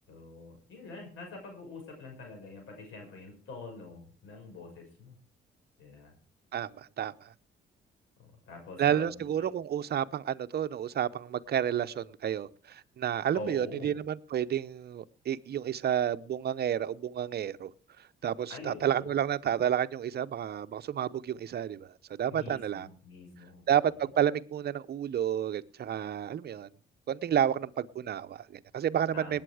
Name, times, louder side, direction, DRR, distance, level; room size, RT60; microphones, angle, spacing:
voice 1, 0.1-5.2 5.8-6.1 8.2-9.5 13.3-13.9 18.5-19.2 22.3-24.0 29.1-29.4, left 3 dB, 85° left, 6.3 m, -45 dB
voice 2, 6.5-7.3 8.8-17.7 18.2-21.9 22.2-22.9 23.7-26.7 27.1-29.4, right 10 dB, 55° right, 0.8 m, -30 dB
19.5 x 8.9 x 4.9 m
cardioid pair, 90°, 20 cm